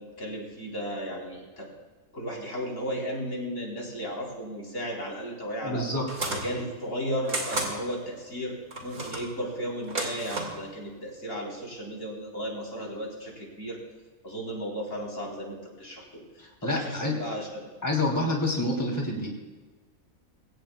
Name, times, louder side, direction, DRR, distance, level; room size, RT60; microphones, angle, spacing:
voice 1, 0.0-1.7 2.1-5.9 6.3-8.6 8.8-13.8 14.2-17.7, equal, 65° left, -2 dB, 4.3 m, -35 dB
voice 2, 5.6-6.0 16.4-17.1 17.8-19.4, left 1 dB, 15° left, -1 dB, 3.0 m, -28 dB
sound 1, 6.1-6.5 7.3-7.7 8.7-9.3 9.8-10.6, right 2 dB, 85° right, 2.8 m, -32 dB
22.5 x 17.0 x 2.3 m, 1.3 s
omnidirectional pair, 1.5 m